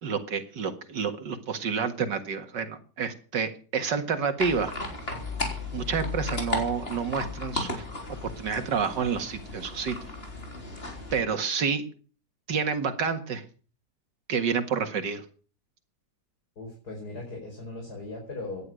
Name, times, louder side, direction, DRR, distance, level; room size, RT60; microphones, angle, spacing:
voice 1, 0.0-4.7 5.7-7.9 8.2-10.0 11.1-11.8 12.5-13.4 14.3-15.2, right 6 dB, 90° right, 9 dB, 2.5 m, -29 dB
sound 1, 4.4-11.2, left 3 dB, 35° left, 4.0 m, -35 dB
voice 2, 16.6-18.7, left 2 dB, 65° left, -1 dB, 5.7 m, -38 dB
17.0 x 11.0 x 6.4 m, 0.40 s
omnidirectional pair, 1.8 m